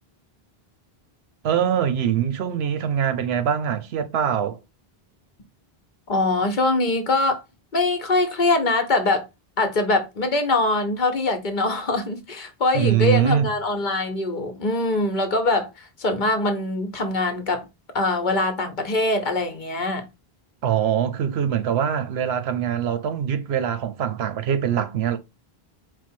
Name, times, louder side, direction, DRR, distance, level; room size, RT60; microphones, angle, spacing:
voice 1, 1.4-4.6 12.7-13.5 20.6-25.2, right 9 dB, 90° right, 0.9 m, -23 dB
voice 2, 6.1-7.4 7.7-9.3 9.6-17.7 17.9-20.0, left 2 dB, 50° left, 0.9 m, -23 dB
4.5 x 2.1 x 4.3 m
omnidirectional pair, 1.0 m